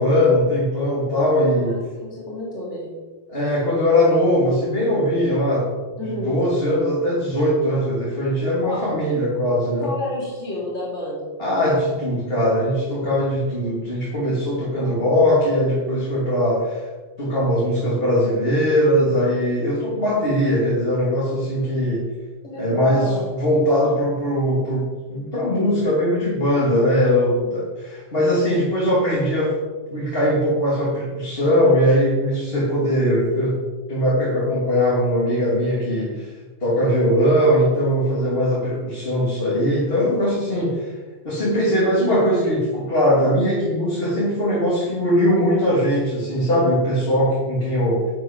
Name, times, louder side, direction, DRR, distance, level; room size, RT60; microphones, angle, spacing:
voice 1, 0.0-1.8 3.3-5.7 6.0-9.9 11.4-16.9 17.2-22.1 22.6-29.6 29.9-33.6 33.9-36.3 36.6-40.9 41.2-48.1, equal, 50° left, -5 dB, 2.9 m, -20 dB
voice 2, 1.6-3.0 6.0-6.4 8.6-9.1 9.8-11.4 14.5-15.1 22.4-23.3 27.1-27.5, left 1 dB, 70° left, -5 dB, 3.1 m, -31 dB
10.5 x 8.5 x 5.9 m, 1.3 s
omnidirectional pair, 1.3 m